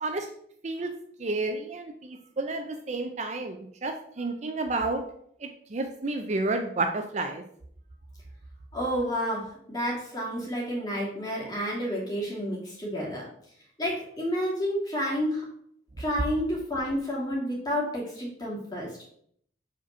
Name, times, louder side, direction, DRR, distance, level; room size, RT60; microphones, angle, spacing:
voice 1, 1.2-5.0 5.4-7.4, right 2 dB, 40° right, 5 dB, 0.5 m, -31 dB
voice 2, 8.7-13.2 13.8-15.4 16.0-18.9, equal, 20° left, -4 dB, 2.3 m, -30 dB
5.0 x 4.2 x 5.5 m, 0.66 s
head